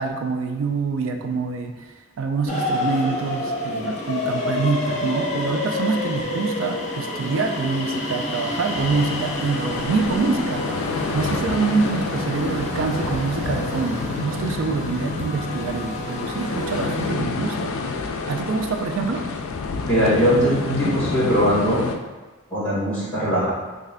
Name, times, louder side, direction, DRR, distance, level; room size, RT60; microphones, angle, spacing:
voice 1, 0.0-1.9 2.2-10.7 11.1-17.7 18.3-19.3, right 4 dB, 65° right, 4 dB, 0.3 m, -25 dB
sound 1, 2.5-17.1, left 2 dB, 35° left, 0.7 m, -29 dB
sound 2, 8.7-22.0, left 4 dB, 70° left, 0.3 m, -29 dB
voice 2, 19.9-21.8 22.5-23.5, equal, 5° left, -9 dB, 1.4 m, -20 dB
3.1 x 2.5 x 3.7 m, 1.2 s
head